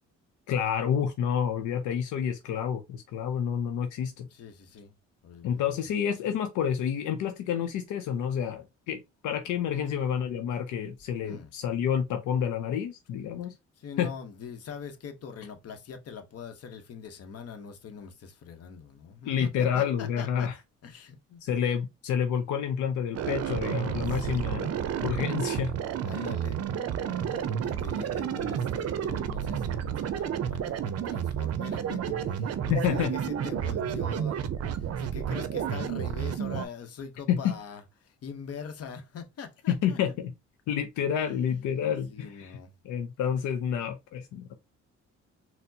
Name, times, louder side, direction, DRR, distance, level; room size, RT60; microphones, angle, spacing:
voice 1, 0.5-4.3 5.4-13.6 14.0-14.1 19.2-20.5 21.4-24.7 25.0-25.7 26.2-26.3 32.7-33.1 37.3-37.6 39.7-40.3 40.7-42.6 42.8-44.5, left 8 dB, 80° left, 0.6 m, -29 dB
voice 2, 4.3-4.9 5.2-5.7 9.7-10.1 11.2-11.5 13.8-20.5 20.8-21.4 24.0-24.4 26.0-40.0 41.3-41.4 42.1-42.7, left 6 dB, 55° left, 0.8 m, -43 dB
sound 1, 23.1-36.7, right 8 dB, 55° right, 0.5 m, -31 dB
4.2 x 2.0 x 2.7 m
cardioid pair, 90°, 30 cm